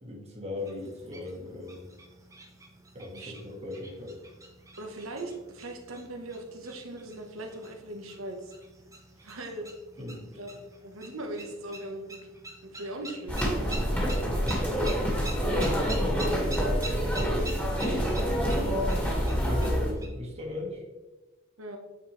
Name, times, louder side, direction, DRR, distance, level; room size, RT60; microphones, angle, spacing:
voice 1, 0.0-1.9 2.9-4.2 9.2-9.3 10.0-10.4 13.9-16.3 16.9-18.8 19.4-20.8, left 1 dB, 30° right, 0 dB, 1.5 m, -38 dB
sound 1, 0.6-20.1, right 2 dB, 15° right, 1.2 m, -46 dB
voice 2, 3.1-3.6 4.8-8.5 9.2-9.7 10.3-12.2 12.6-13.4 21.6-21.8, right 1 dB, 80° right, 3 dB, 1.2 m, -40 dB
sound 2, 13.3-19.9, equal, 10° left, 1.9 m, -27 dB
8.9 x 4.6 x 3.3 m, 1.2 s
head